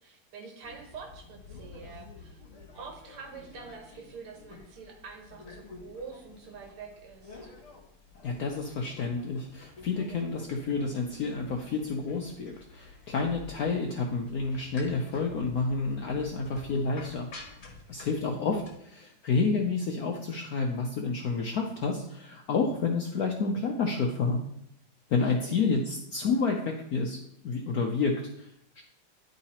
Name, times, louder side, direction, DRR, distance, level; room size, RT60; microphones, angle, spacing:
voice 1, 0.0-2.4 2.7-7.5 18.3-18.5 25.2-25.6, right 5 dB, 85° right, 3 dB, 2.2 m, -46 dB
sound 1, 0.6-18.7, left 3 dB, 40° left, 1.4 m, -50 dB
voice 2, 8.2-17.3 17.9-24.4 25.1-27.2 27.4-28.8, left 4 dB, 70° left, 1 dB, 0.9 m, -29 dB
10.0 x 3.9 x 4.2 m, 0.73 s
omnidirectional pair, 2.3 m